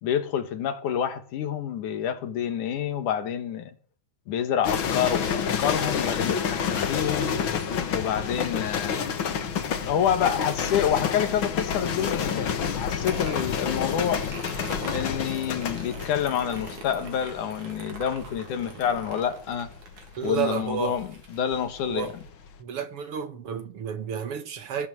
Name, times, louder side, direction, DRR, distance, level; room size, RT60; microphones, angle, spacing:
voice 1, 0.0-3.7 4.3-7.3 7.9-9.1 9.8-14.2 14.9-19.7 20.2-22.1, left 9 dB, 90° left, 3.1 m, -28 dB
sound 1, 4.6-21.9 22.2-22.6, left 7 dB, 50° left, 1.9 m, -29 dB
sound 2, 13.1-22.3, right 4 dB, 75° right, 4.8 m, -43 dB
voice 2, 20.2-21.0 21.9-22.2 22.6-24.9, right 7 dB, 55° right, 2.0 m, -31 dB
20.0 x 8.6 x 7.9 m
omnidirectional pair, 3.4 m